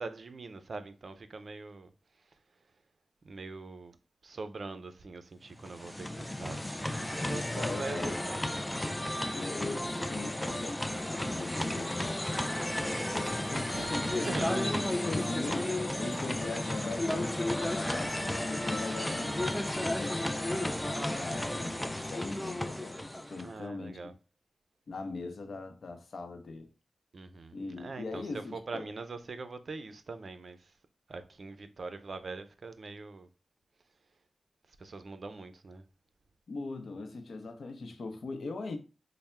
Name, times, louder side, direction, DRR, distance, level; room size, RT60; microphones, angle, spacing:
voice 1, 0.0-1.9 3.2-4.0 4.2-6.6 7.1-8.5 13.7-14.9 23.4-24.1 27.1-30.7 31.1-33.3 34.8-35.8, right 3 dB, 60° right, 0.5 m, -42 dB
sound 1, 5.5-23.6, left 1 dB, 10° left, 0.3 m, -33 dB
voice 2, 7.2-8.2 9.3-19.5 19.7-24.1 24.9-26.7 27.5-28.9 36.5-38.8, left 3 dB, 70° left, 0.6 m, -40 dB
3.3 x 2.1 x 4.2 m
cardioid pair, 65°, 0 cm